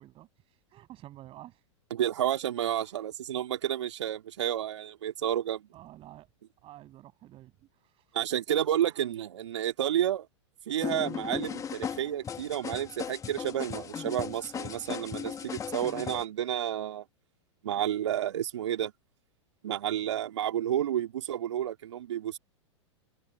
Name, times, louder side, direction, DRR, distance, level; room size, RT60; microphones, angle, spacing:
voice 1, 0.0-1.7 2.8-3.1 5.7-6.3 6.6-8.2 8.8-9.1, right 14 dB, 35° right, 6.6 m, -51 dB
voice 2, 1.9-5.7 8.1-10.3 10.7-17.0 17.6-18.9 19.6-22.4, right 11 dB, 70° right, 2.9 m, -31 dB
sound 1, 10.8-16.2, left 7 dB, 20° left, 1.6 m, -37 dB
open air
hypercardioid pair, 100°, 15 cm